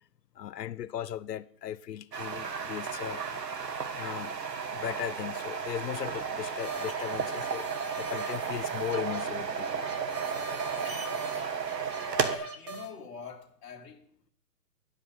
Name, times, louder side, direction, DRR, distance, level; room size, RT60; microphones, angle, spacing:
voice 1, 0.4-3.2 3.9-7.7 8.0-9.8, left 10 dB, 80° left, 0.6 m, -37 dB
sound 1, 2.1-12.4, right 6 dB, 90° right, 1.5 m, -34 dB
sound 2, 6.5-12.9, right 3 dB, 25° right, 1.1 m, -41 dB
voice 2, 10.8-11.6 12.3-14.3, left 6 dB, 15° left, 1.1 m, -46 dB
10.0 x 5.4 x 7.4 m
hypercardioid pair, 145°, 48 cm